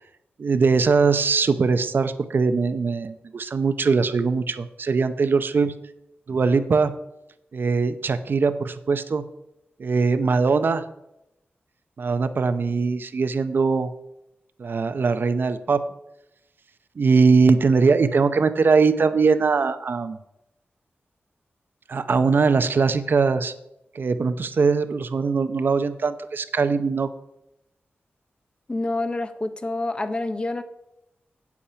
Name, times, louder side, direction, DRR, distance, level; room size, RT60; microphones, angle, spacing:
voice 1, 0.4-5.7 6.3-6.9 7.5-9.2 9.8-10.8 12.0-13.9 14.6-15.8 17.0-20.2 21.9-23.5 23.9-27.1, right 4 dB, 55° right, 11 dB, 0.6 m, -21 dB
voice 2, 28.7-30.6, left 2 dB, 25° left, 10 dB, 0.7 m, -27 dB
8.5 x 8.4 x 5.6 m, 0.85 s
wide cardioid pair, 165°, 4 cm